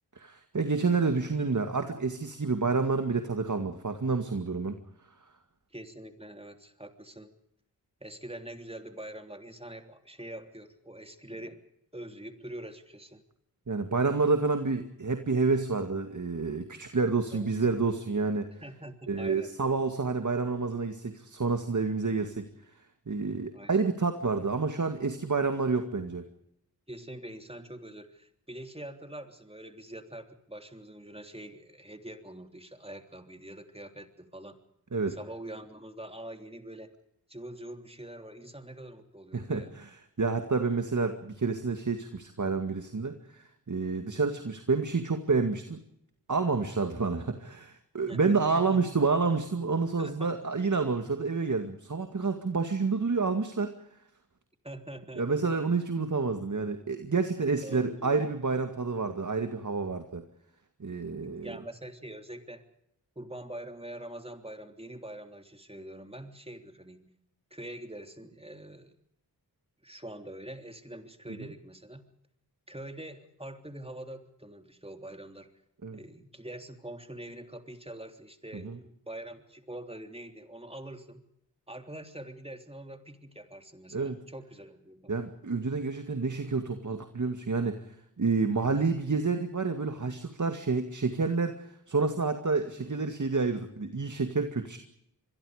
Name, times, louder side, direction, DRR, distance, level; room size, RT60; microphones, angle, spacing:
voice 1, 0.2-4.7 13.7-18.5 19.1-22.5 23.1-26.3 34.9-35.2 39.3-45.8 46.3-53.7 55.2-60.2 60.8-61.5 75.8-76.0 78.5-78.8 83.9-84.2 85.1-87.8 88.2-94.8, right 4 dB, 50° right, 7 dB, 2.2 m, -29 dB
voice 2, 5.7-7.3 8.0-11.6 11.9-13.2 17.3-17.5 18.6-19.5 23.5-23.8 26.9-34.6 35.1-36.9 37.3-39.7 48.1-49.0 50.0-50.4 54.6-55.7 57.1-57.3 57.6-58.3 61.0-62.7 63.1-67.1 67.5-69.0 69.8-72.0 72.7-75.5 75.9-81.2 81.7-85.1 88.6-88.8, right 1 dB, 15° right, 6 dB, 3.3 m, -44 dB
26.5 x 22.5 x 5.1 m, 0.75 s
cardioid pair, 50°, 40 cm